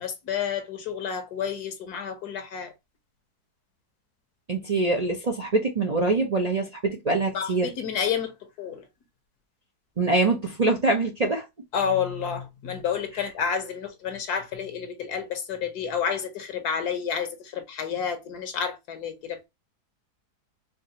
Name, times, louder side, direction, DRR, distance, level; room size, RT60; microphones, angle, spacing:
voice 1, 0.0-2.7 7.3-8.9 11.7-19.5, left 7 dB, 75° left, 1.4 m, -30 dB
voice 2, 4.5-7.7 10.0-11.5, right 3 dB, 50° right, 0.4 m, -24 dB
4.7 x 2.5 x 2.9 m
omnidirectional pair, 1.7 m